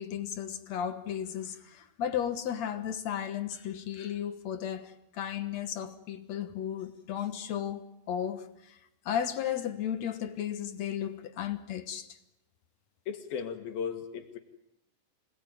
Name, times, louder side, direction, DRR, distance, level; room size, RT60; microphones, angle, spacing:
voice 1, 0.0-8.8 9.1-12.2, left 9 dB, 60° left, 2.1 m, -34 dB
voice 2, 13.1-14.4, left 7 dB, 80° left, 3.5 m, -36 dB
26.5 x 19.5 x 9.2 m
omnidirectional pair, 4.2 m